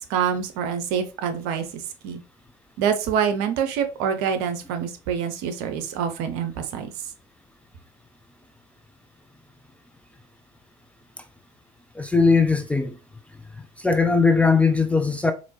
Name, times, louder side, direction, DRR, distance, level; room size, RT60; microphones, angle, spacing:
voice 1, 0.1-2.2 2.8-6.9, right 7 dB, 55° right, 0.7 m, -26 dB
voice 2, 11.9-13.0 13.8-15.3, left 4 dB, 5° left, 0.4 m, -19 dB
4.2 x 2.7 x 2.9 m
figure-of-eight pair, 65°, 19 cm